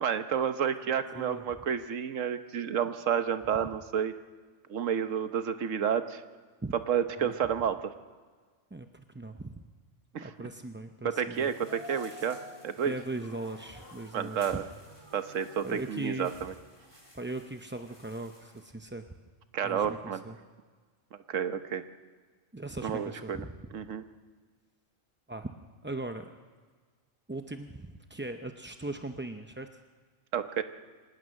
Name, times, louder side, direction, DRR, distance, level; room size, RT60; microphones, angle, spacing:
voice 1, 0.0-4.1 4.7-6.2 6.9-7.9 10.1-10.3 11.0-12.9 14.1-14.6 15.1-16.5 19.5-20.2 21.1-21.8 22.8-23.4 23.7-24.0 30.3-30.6, right 8 dB, 80° right, 10 dB, 1.3 m, -30 dB
voice 2, 1.1-1.4 6.6-6.7 7.2-7.3 8.7-9.7 10.2-11.5 12.2-12.3 12.8-14.6 15.6-16.4 17.1-19.1 19.6-20.0 20.2-20.4 22.5-23.5 25.3-25.5 25.8-26.3 27.3-29.7, right 2 dB, 15° right, 6 dB, 0.4 m, -39 dB
sound 1, 11.3-18.7, left 2 dB, 20° left, 3.0 m, -51 dB
24.5 x 19.0 x 6.4 m, 1.5 s
omnidirectional pair, 1.3 m